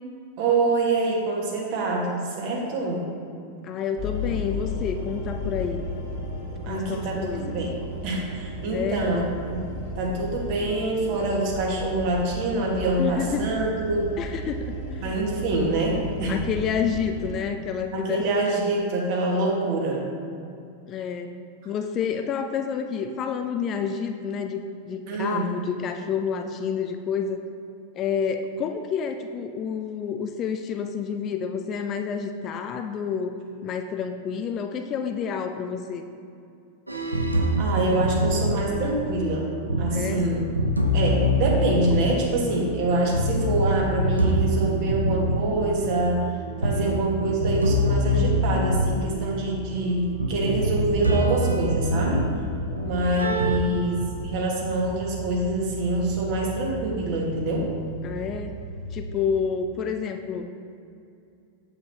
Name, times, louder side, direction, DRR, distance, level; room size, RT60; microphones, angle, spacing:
voice 1, 0.4-3.0 6.6-7.7 8.0-9.2 9.5-9.6 10.0-14.1 15.0-16.4 17.9-20.0 25.1-25.5 37.6-39.5 39.8-40.4 40.9-46.2 46.6-52.2 52.8-57.7, right 2 dB, 45° right, -2 dB, 1.6 m, -25 dB
voice 2, 3.6-5.9 6.6-7.6 8.7-9.1 13.0-13.5 14.2-15.2 16.3-18.3 20.9-21.4 21.7-27.4 28.0-33.3 33.6-36.0 39.9-40.3 53.3-53.6 58.0-58.6 58.9-60.5, left 7 dB, 30° left, 6 dB, 0.4 m, -29 dB
sound 1, 4.0-17.3, left 1 dB, 50° left, 1.4 m, -34 dB
sound 2, 36.9-53.6, equal, 85° right, 0.7 m, -25 dB
sound 3, 50.0-59.1, right 3 dB, 5° left, 0.9 m, -37 dB
7.8 x 7.7 x 2.8 m, 2.5 s
figure-of-eight pair, 90°, 0 cm